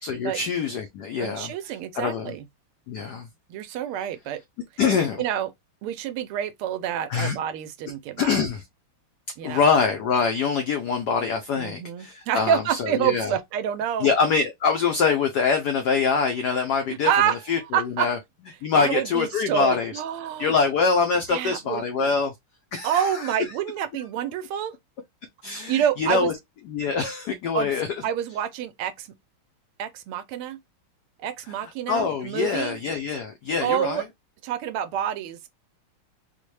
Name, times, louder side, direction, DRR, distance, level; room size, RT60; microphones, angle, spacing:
voice 1, 0.0-1.5 1.9-2.3 2.9-3.3 4.8-5.2 7.1-7.4 8.2-8.6 9.4-13.3 14.0-17.1 17.5-18.2 18.6-19.9 20.4-22.3 22.7-23.0 25.4-26.3 26.7-27.9 31.9-34.0, left 5 dB, 90° left, 0.9 m, -24 dB
voice 2, 1.2-2.5 3.5-4.4 5.2-5.5 5.8-8.4 9.4-9.7 11.5-14.1 17.0-17.4 17.7-18.1 18.7-20.6 21.3-22.1 22.8-24.7 25.7-26.3 27.5-27.7 28.0-29.1 29.8-30.6 31.2-32.8 33.6-34.0 34.4-35.5, right 10 dB, 85° right, 1.5 m, -27 dB
4.3 x 2.1 x 3.1 m
omnidirectional pair, 2.4 m